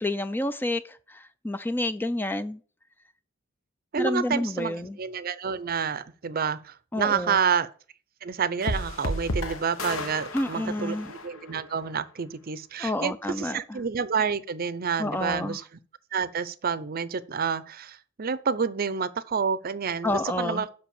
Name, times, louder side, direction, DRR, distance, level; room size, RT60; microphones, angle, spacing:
voice 1, 0.0-2.6 4.0-5.0 6.9-7.4 10.3-11.1 12.8-13.8 15.0-15.6 20.0-20.6, left 1 dB, 10° left, 0.4 m, -29 dB
voice 2, 3.9-7.7 8.2-15.6 16.1-20.7, right 6 dB, 45° right, 0.6 m, -29 dB
sound 1, 8.6-11.9, left 1 dB, 70° left, 1.2 m, -33 dB
7.5 x 5.9 x 7.0 m
head